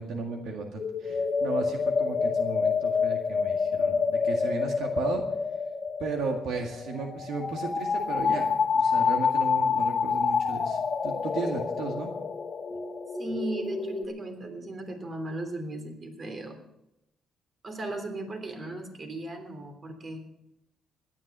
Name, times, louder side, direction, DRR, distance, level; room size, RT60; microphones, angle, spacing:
voice 1, 0.0-5.2 6.0-12.1, right 4 dB, 80° right, 2 dB, 1.9 m, -35 dB
sound 1, 0.8-14.1, left 5 dB, 45° left, 1.4 m, -28 dB
voice 2, 13.2-16.6 17.6-20.2, right 2 dB, 40° right, 5 dB, 3.3 m, -36 dB
16.5 x 11.0 x 5.5 m, 0.83 s
cardioid pair, 90°, 0 cm